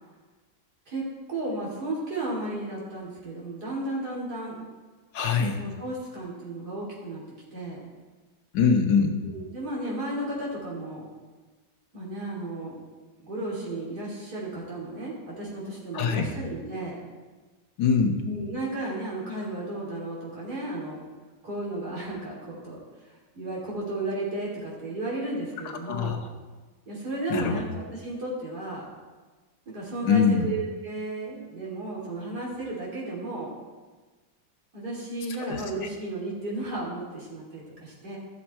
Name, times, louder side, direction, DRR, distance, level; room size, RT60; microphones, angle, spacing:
voice 1, 0.9-4.6 5.6-7.2 7.5-7.8 9.2-11.1 11.9-12.8 13.2-17.0 18.2-21.0 21.4-22.8 23.3-26.2 26.9-28.9 29.7-33.5 34.7-38.2, right 2 dB, 60° right, -5 dB, 3.5 m, -34 dB
voice 2, 5.1-5.6 8.5-9.2 15.9-16.3 17.8-18.2 25.6-26.2 27.3-27.6 30.0-30.4 35.5-35.6, left 6 dB, 80° left, 3 dB, 1.7 m, -23 dB
13.5 x 7.1 x 4.3 m, 1.3 s
omnidirectional pair, 2.0 m